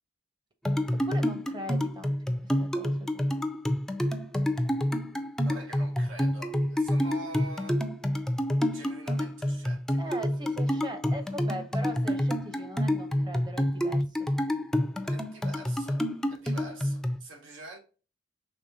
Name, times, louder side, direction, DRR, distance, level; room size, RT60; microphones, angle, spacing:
sound 1, 0.6-17.2, equal, 5° left, 0.3 m, -28 dB
voice 1, 1.1-3.3 10.0-14.0, right 1 dB, 25° right, 0.7 m, -40 dB
voice 2, 5.2-7.8 8.7-10.1 15.0-16.0 16.3-17.8, right 2 dB, 85° right, 1.0 m, -45 dB
5.2 x 3.3 x 2.7 m
head